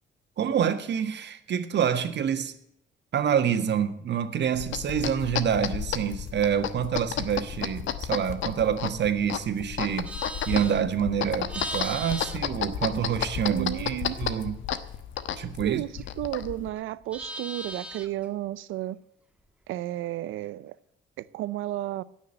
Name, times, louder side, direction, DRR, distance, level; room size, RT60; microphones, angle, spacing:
voice 1, 0.4-2.5 3.1-10.1 10.5-14.5 15.4-15.8, right 8 dB, 60° right, 1.7 m, -27 dB
sound 1, 4.5-16.7, left 9 dB, 75° left, 1.1 m, -33 dB
Livestock farm animals working animals, 10.0-13.5 13.8-16.4 16.7-18.3, right 1 dB, 5° right, 1.6 m, -40 dB
voice 2, 13.5-14.2 15.6-19.0 19.7-20.8 21.2-22.0, right 15 dB, 90° right, 0.7 m, -33 dB
17.0 x 6.5 x 8.9 m
cardioid pair, 90°, 20 cm